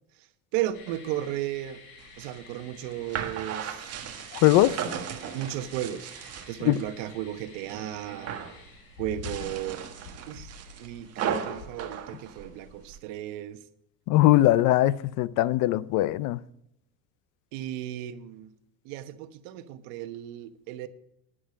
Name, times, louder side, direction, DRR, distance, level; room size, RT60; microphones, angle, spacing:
voice 1, 0.5-1.8 2.2-3.9 5.3-6.1 6.5-8.4 9.0-9.9 10.3-10.5 10.8-13.6 17.5-18.5 18.8-20.9, right 12 dB, 80° right, 1.2 m, -34 dB
sound 1, 0.7-12.9, left 4 dB, 75° left, 6.1 m, -49 dB
sound 2, 2.0-6.9 7.3-7.8 8.1-8.6 9.1-13.0, right 8 dB, 35° right, 1.5 m, -36 dB
voice 2, 4.4-4.8 6.6-6.8 14.1-16.4, left 15 dB, 50° left, 0.5 m, -21 dB
11.0 x 10.0 x 5.1 m
cardioid pair, 165°, 41 cm